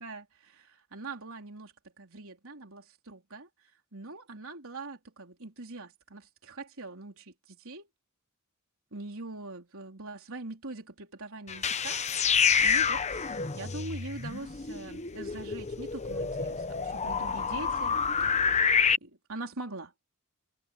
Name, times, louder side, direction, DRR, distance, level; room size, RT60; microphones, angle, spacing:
voice 1, 0.0-3.5 3.9-7.9 8.9-12.0 12.6-18.7 19.0-19.9, right 2 dB, 65° right, 4.2 m, -43 dB
sound 1, 11.5-19.0, left 6 dB, 30° left, 0.9 m, -28 dB
head